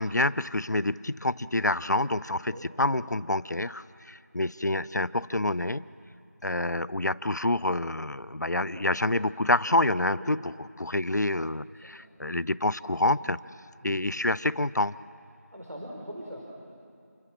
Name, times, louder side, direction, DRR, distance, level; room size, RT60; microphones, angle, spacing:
voice 1, 0.0-5.8 6.4-13.4 13.8-14.9, left 2 dB, 90° left, 18 dB, 0.6 m, -27 dB
voice 2, 8.6-9.1 10.2-10.5 11.7-12.0 13.8-14.1 15.5-16.4, equal, 70° right, -2 dB, 4.6 m, -43 dB
28.0 x 22.5 x 7.5 m, 2.5 s
figure-of-eight pair, 175°, 9 cm